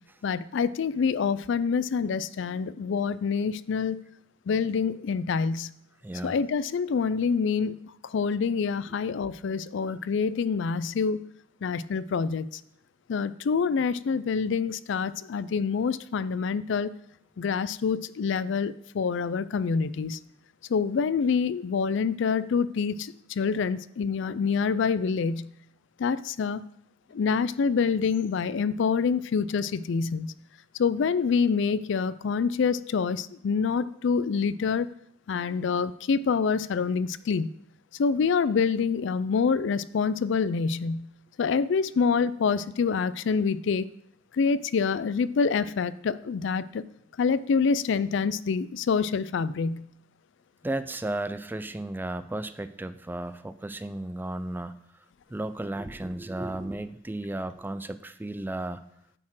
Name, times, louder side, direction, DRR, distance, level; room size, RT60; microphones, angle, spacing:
voice 1, 0.2-4.0 4.5-5.7 6.2-7.8 8.1-11.2 11.6-12.5 13.1-16.9 17.4-20.2 20.7-25.5 26.0-26.6 27.1-30.3 30.8-34.9 35.3-37.5 38.0-41.1 41.4-43.9 44.4-46.8 47.2-49.8, left 5 dB, 70° left, 17 dB, 0.4 m, -26 dB
voice 2, 6.0-6.4 50.6-54.8 55.3-58.8, right 1 dB, 10° right, 12 dB, 0.4 m, -34 dB
9.8 x 4.3 x 7.5 m, 0.72 s
head